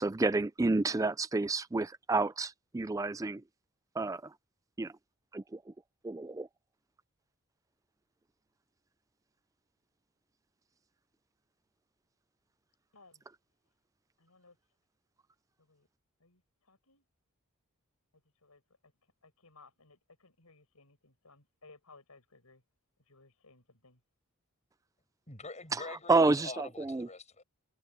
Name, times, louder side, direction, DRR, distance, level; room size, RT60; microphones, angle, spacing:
voice 1, 0.0-3.4 4.0-4.3 4.8-4.9 5.3-5.6 6.0-6.5 25.7-25.8 26.1-27.1, right 3 dB, 15° right, 0.3 m, -29 dB
voice 2, 14.2-14.5 15.7-15.9 16.2-16.4 16.7-17.0 18.4-18.6 19.4-20.0 20.2-22.6 23.1-24.0, left 3 dB, 90° left, 6.0 m, -60 dB
voice 3, 25.3-27.4, left 3 dB, 30° left, 7.3 m, -45 dB
head